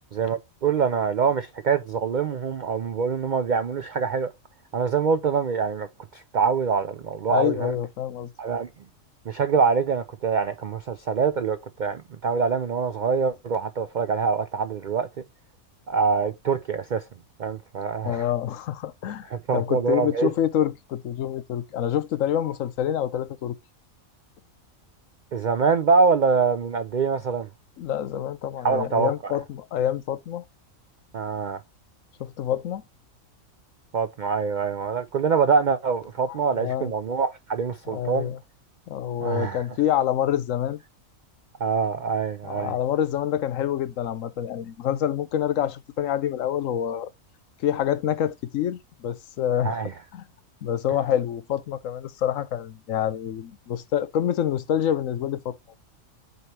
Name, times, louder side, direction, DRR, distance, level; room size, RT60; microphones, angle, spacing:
voice 1, 0.1-4.3 4.7-5.9 6.1-7.7 8.4-8.7 9.3-15.1 15.9-17.0 17.4-18.3 19.3-20.3 25.3-27.5 28.6-29.3 31.1-31.6 33.9-38.3 39.2-39.6 41.6-42.7 49.6-49.9, right 5 dB, 60° right, 0.5 m, -24 dB
voice 2, 7.3-8.3 18.0-23.6 27.8-30.4 32.2-32.8 36.3-36.9 37.9-38.4 38.9-40.8 42.4-47.1 47.6-49.8 50.1-50.2 50.6-55.6, left 10 dB, 75° left, 1.1 m, -27 dB
8.0 x 3.1 x 4.4 m
omnidirectional pair, 1.4 m